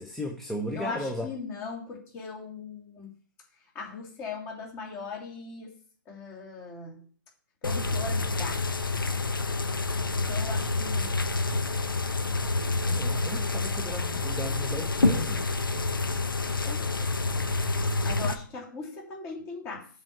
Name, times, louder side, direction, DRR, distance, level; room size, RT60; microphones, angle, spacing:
voice 1, 0.0-1.2 12.9-15.5, equal, ahead, 0 dB, 0.8 m, -35 dB
voice 2, 0.7-3.1 3.7-5.7 6.1-7.0 7.6-8.6 10.1-11.1 16.6-17.5 18.0-19.9, left 4 dB, 20° left, 0 dB, 3.0 m, -39 dB
sound 1, 7.6-18.4, left 3 dB, 75° left, 1.0 m, -28 dB
7.4 x 4.9 x 6.4 m, 0.43 s
figure-of-eight pair, 135°, 11 cm